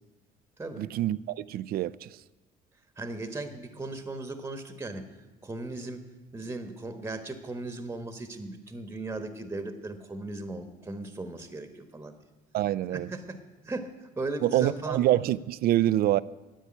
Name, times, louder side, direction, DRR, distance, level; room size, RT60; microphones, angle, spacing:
voice 1, 0.8-2.1 12.5-13.1 14.4-16.2, right 13 dB, 65° right, 0.4 m, -26 dB
voice 2, 3.0-5.0 5.4-6.0 6.3-12.2 12.9-15.0, right 2 dB, 15° right, 1.2 m, -37 dB
10.0 x 8.4 x 9.7 m
cardioid pair, 110°, 17 cm